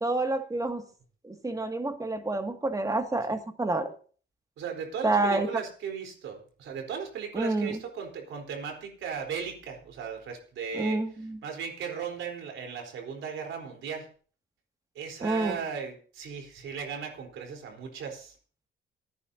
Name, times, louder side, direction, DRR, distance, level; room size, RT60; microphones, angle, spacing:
voice 1, 0.0-0.8 1.2-3.9 5.0-5.5 7.3-7.8 10.7-11.4 15.2-15.6, right 2 dB, 15° right, 5 dB, 2.1 m, -28 dB
voice 2, 4.6-14.1 14.9-18.4, right 6 dB, 75° right, 3 dB, 3.9 m, -37 dB
28.5 x 9.7 x 2.8 m, 0.42 s
cardioid pair, 90°, 20 cm